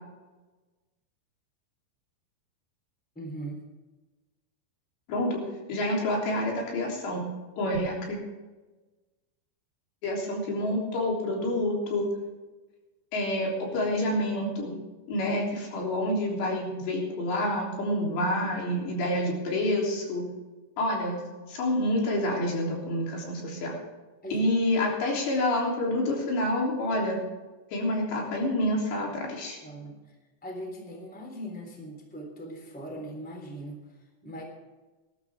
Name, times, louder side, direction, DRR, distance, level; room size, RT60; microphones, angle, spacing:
voice 1, 3.1-3.6 24.2-24.5 29.6-30.0 30.4-33.8 34.2-34.4, right 1 dB, ahead, 1 dB, 2.7 m, -39 dB
voice 2, 5.1-5.4 5.7-7.2 7.6-8.2 10.0-12.1 13.1-14.8 15.1-20.3 20.8-21.2 21.5-23.7 24.3-27.2 27.7-29.6, left 1 dB, 80° left, -2 dB, 5.6 m, -28 dB
20.5 x 12.5 x 3.6 m, 1.2 s
omnidirectional pair, 4.9 m